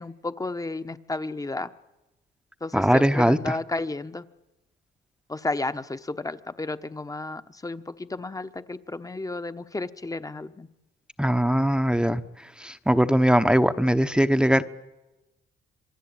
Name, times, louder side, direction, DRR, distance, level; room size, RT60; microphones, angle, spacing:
voice 1, 0.0-1.7 2.6-4.2 5.3-10.7, left 2 dB, 15° left, 12 dB, 1.1 m, -32 dB
voice 2, 2.7-3.4 11.2-12.2 12.6-14.6, equal, 5° right, 10 dB, 1.0 m, -20 dB
26.5 x 21.5 x 8.8 m, 1.0 s
cardioid pair, 90°, 20 cm